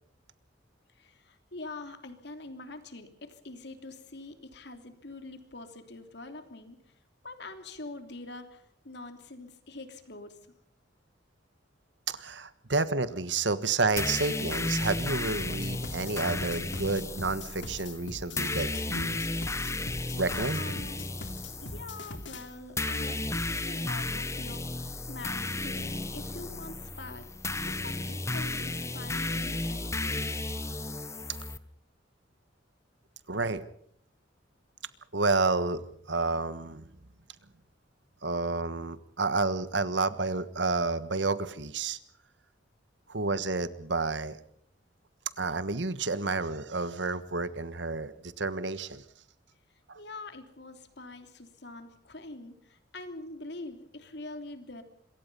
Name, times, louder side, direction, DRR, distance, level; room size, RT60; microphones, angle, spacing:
voice 1, 0.9-6.8 7.2-10.4 20.6-21.1 21.6-27.3 27.7-30.2 49.9-54.8, left 2 dB, 65° left, 7 dB, 3.1 m, -44 dB
voice 2, 12.1-19.3 20.1-20.6 33.3-33.6 35.1-35.8 36.1-36.9 38.2-42.0 43.1-44.4 45.4-49.0 49.9-50.0, right 3 dB, 70° right, 13 dB, 1.4 m, -30 dB
sound 1, 14.0-31.6, left 2 dB, 15° left, 1.0 m, -34 dB
sound 2, 15.4-22.5, left 2 dB, 80° left, 2.7 m, -42 dB
26.5 x 23.0 x 5.5 m, 0.65 s
head